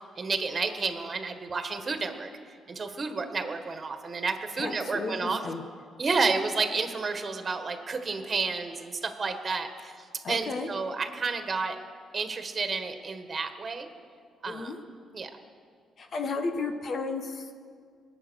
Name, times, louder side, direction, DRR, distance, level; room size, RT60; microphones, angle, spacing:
voice 1, 0.2-2.3 2.7-5.4 6.0-9.9 10.3-11.7 12.1-13.9 14.4-14.7 15.1-15.3, right 4 dB, 35° right, 7 dB, 1.6 m, -30 dB
voice 2, 4.6-5.6 10.2-10.7 14.5-14.8 16.0-17.5, left 4 dB, 55° left, 5 dB, 1.5 m, -33 dB
23.0 x 9.0 x 6.5 m, 2.1 s
cardioid pair, 90°, 0 cm